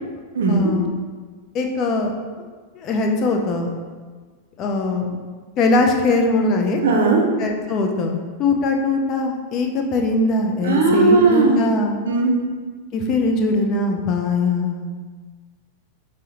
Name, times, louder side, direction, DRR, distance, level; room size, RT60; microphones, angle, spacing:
voice 1, 0.5-0.9 1.5-2.1 2.7-3.7 4.6-5.2 5.6-6.8 7.4-12.0 12.9-14.9, left 2 dB, 35° left, 2 dB, 0.4 m, -21 dB
voice 2, 6.8-7.3 10.6-11.7 12.0-12.4, right 3 dB, 60° right, 1 dB, 0.5 m, -17 dB
5.5 x 2.0 x 2.8 m, 1.5 s
figure-of-eight pair, 90°, 0 cm